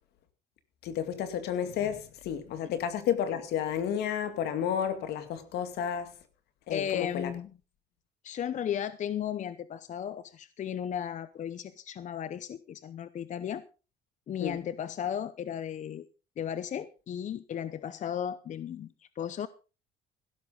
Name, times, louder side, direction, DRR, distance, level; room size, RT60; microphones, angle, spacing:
voice 1, 0.8-6.1 6.7-7.3 14.4-14.6, left 9 dB, 75° left, 2.3 m, -31 dB
voice 2, 6.7-7.5 8.2-13.6 14.3-16.1 16.4-19.5, left 9 dB, 45° left, 0.8 m, -35 dB
16.0 x 13.0 x 3.9 m
cardioid pair, 110°, 17 cm